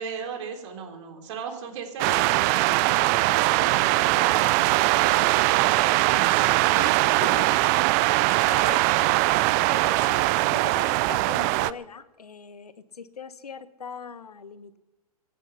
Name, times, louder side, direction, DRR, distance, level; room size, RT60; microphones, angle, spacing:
voice 1, 0.0-6.9 7.2-7.4, right 6 dB, 50° right, 3 dB, 3.7 m, -37 dB
sound 1, 2.0-11.7, right 19 dB, 25° right, 0.4 m, -21 dB
voice 2, 7.2-7.6 8.5-9.2 9.7-14.8, left 6 dB, 80° left, 12 dB, 1.2 m, -40 dB
17.5 x 9.9 x 5.9 m, 1.1 s
hypercardioid pair, 125°, 19 cm